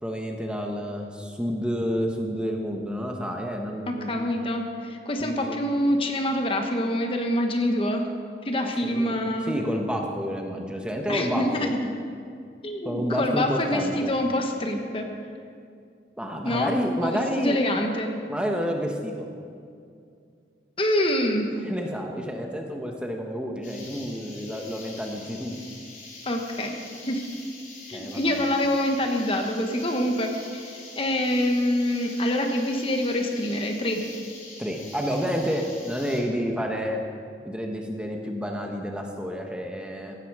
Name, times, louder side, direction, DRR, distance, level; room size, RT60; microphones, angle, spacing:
voice 1, 0.0-4.1 5.2-5.6 8.6-9.1 9.5-11.7 12.8-14.1 16.2-17.6 18.3-19.3 21.6-25.5 27.9-28.5 34.6-37.0 37.4-40.1, equal, 5° right, 1 dB, 1.2 m, -29 dB
voice 2, 3.9-8.1 8.4-9.6 11.1-11.8 12.6-15.1 16.4-16.7 17.0-18.1 20.8-21.5 26.3-26.8 27.1-27.2 27.9-34.0, left 1 dB, 30° left, 3 dB, 1.3 m, -26 dB
sound 1, 23.6-36.2, left 3 dB, 45° left, 3.8 m, -44 dB
16.5 x 14.0 x 4.8 m, 2.3 s
head